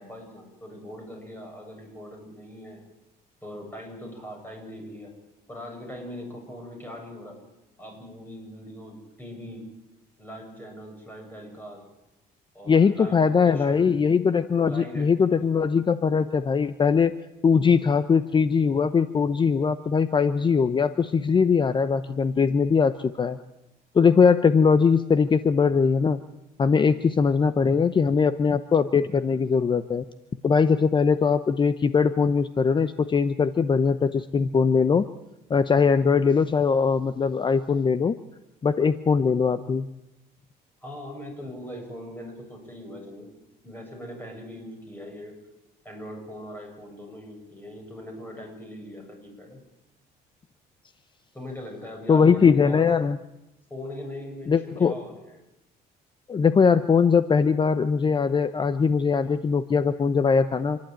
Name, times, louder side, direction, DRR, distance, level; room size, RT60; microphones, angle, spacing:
voice 1, 0.0-2.8 3.4-5.1 5.5-7.4 7.8-9.6 10.2-11.8 12.5-13.9 14.6-15.5 40.8-43.3 43.6-45.4 45.8-49.6 51.3-52.8 53.7-55.4, equal, 10° left, 1 dB, 7.7 m, -41 dB
voice 2, 12.7-17.1 17.4-23.4 23.9-26.2 26.6-30.0 30.4-35.1 35.5-38.2 38.6-39.9 52.1-53.2 54.5-54.9 56.3-60.8, left 5 dB, 30° left, 13 dB, 0.7 m, -21 dB
27.5 x 11.5 x 9.0 m, 0.91 s
cardioid pair, 110°, 17 cm